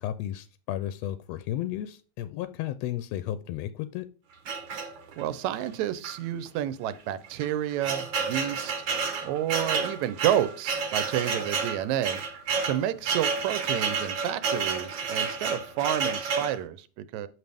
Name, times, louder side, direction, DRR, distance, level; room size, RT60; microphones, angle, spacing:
voice 1, 0.0-4.1, left 12 dB, 80° left, 12 dB, 1.5 m, -33 dB
sound 1, 4.5-5.3 6.0-6.2 6.5-6.6 7.2-16.6, right 5 dB, 55° right, 1.4 m, -30 dB
voice 2, 5.2-8.7 9.2-12.2 12.6-17.3, right 11 dB, 80° right, 14 dB, 2.0 m, -30 dB
9.2 x 6.6 x 3.5 m, 0.38 s
omnidirectional pair, 3.3 m